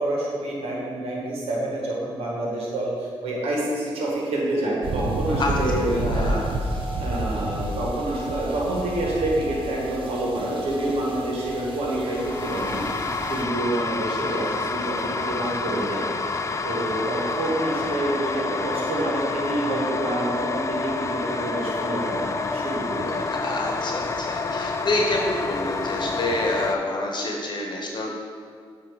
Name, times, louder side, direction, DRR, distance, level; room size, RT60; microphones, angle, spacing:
voice 1, 0.0-6.7 7.0-16.1 16.6-23.2, right 1 dB, 85° right, -3 dB, 1.4 m, -27 dB
sound 1, 4.8-13.4, right 1 dB, 65° right, 0.8 m, -30 dB
voice 2, 5.9-6.5 14.1-14.4 23.2-28.1, left 2 dB, 50° left, -1 dB, 1.0 m, -28 dB
sound 2, 12.0-26.8, left 4 dB, 30° left, 0.4 m, -28 dB
8.5 x 2.9 x 4.7 m, 2.1 s
cardioid pair, 65°, 10 cm